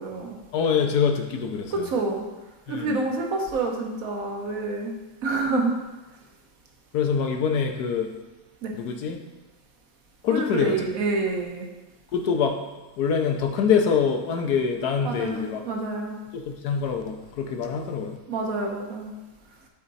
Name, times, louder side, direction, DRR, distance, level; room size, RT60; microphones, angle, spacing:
voice 1, 0.0-0.4 1.7-2.2 2.7-5.7 8.6-8.7 10.3-11.7 15.0-16.2 18.3-19.1, right 3 dB, 60° right, 1 dB, 1.5 m, -28 dB
voice 2, 0.5-1.9 2.7-3.0 6.9-8.1 8.7-9.2 10.2-10.9 12.1-12.6 13.0-15.6 16.3-18.2, left 6 dB, 70° left, 4 dB, 1.4 m, -25 dB
11.5 x 4.3 x 4.1 m, 1.1 s
omnidirectional pair, 1.8 m